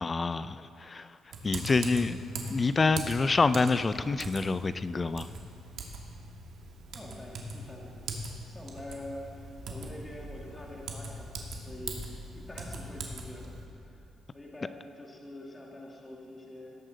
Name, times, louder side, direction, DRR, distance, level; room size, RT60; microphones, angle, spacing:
voice 1, 0.0-1.1 1.4-2.2 2.5-5.3, left 4 dB, 30° left, 13 dB, 0.4 m, -27 dB
Typing, 1.3-13.6, right 2 dB, 70° right, 1.5 m, -41 dB
sound 1, 6.5-14.2, left 1 dB, ahead, 2.6 m, -50 dB
voice 2, 6.9-14.0 14.3-16.8, left 1 dB, 15° left, -2 dB, 1.9 m, -46 dB
17.5 x 7.5 x 4.0 m, 2.5 s
cardioid pair, 90°, 0 cm